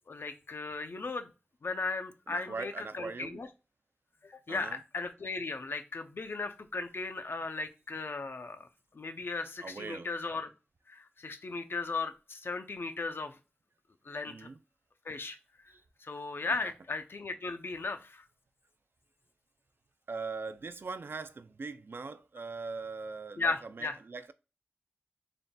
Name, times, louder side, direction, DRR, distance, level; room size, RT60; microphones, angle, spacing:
voice 1, 0.1-1.3 1.6-3.5 4.2-8.7 8.9-10.5 10.9-13.4 14.0-14.5 15.1-15.4 16.0-18.3 23.4-24.0, left 3 dB, 80° left, 0.5 m, -36 dB
voice 2, 2.3-3.4 4.5-4.8 9.6-10.1 14.3-14.6 15.7-15.8 16.6-16.7 20.1-24.3, right 4 dB, 75° right, 0.3 m, -41 dB
3.9 x 3.5 x 2.2 m
wide cardioid pair, 50°, 4 cm